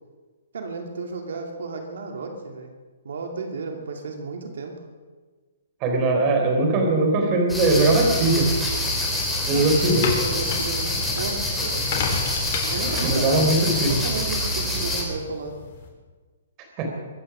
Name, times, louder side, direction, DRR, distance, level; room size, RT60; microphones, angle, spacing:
voice 1, 0.5-2.7 3.0-4.8 9.5-11.9 12.7-15.6, right 4 dB, 75° right, 3 dB, 2.4 m, -33 dB
voice 2, 5.8-8.5 9.5-10.0 13.0-14.0 16.8-16.9, right 2 dB, 25° right, 3 dB, 3.8 m, -20 dB
sound 1, 7.5-15.0, left 1 dB, 5° left, 3.3 m, -26 dB
sound 2, 10.0-15.9, left 5 dB, 40° left, 3.8 m, -33 dB
23.5 x 9.9 x 6.2 m, 1.4 s
hypercardioid pair, 160°, 0 cm